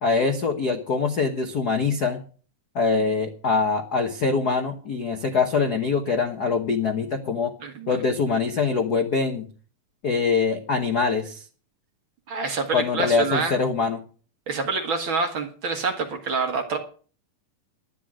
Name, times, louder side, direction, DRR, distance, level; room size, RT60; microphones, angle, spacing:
voice 1, 0.0-2.2 2.7-7.5 7.9-9.5 10.0-11.4 12.7-14.0, left 4 dB, 70° left, 5 dB, 0.9 m, -23 dB
voice 2, 7.6-8.0 12.3-13.5 14.5-16.8, right 4 dB, 45° right, 4 dB, 1.9 m, -27 dB
11.5 x 10.5 x 6.3 m, 0.40 s
omnidirectional pair, 3.7 m